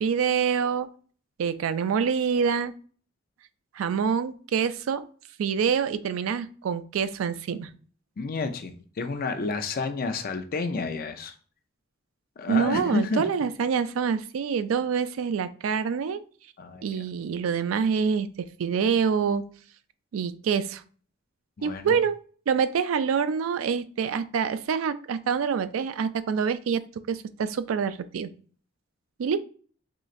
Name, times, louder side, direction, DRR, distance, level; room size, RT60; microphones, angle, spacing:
voice 1, 0.0-0.9 1.4-2.7 3.8-5.1 5.4-7.7 12.5-16.2 16.8-19.5 20.1-20.8 21.6-22.2 22.5-26.8 27.1-28.3 29.2-29.4, right 6 dB, 85° right, 13 dB, 0.3 m, -26 dB
voice 2, 8.2-11.3 12.4-13.2 16.6-17.0 21.6-22.0, left 3 dB, 45° left, 7 dB, 0.5 m, -30 dB
3.9 x 3.0 x 2.5 m, 0.42 s
head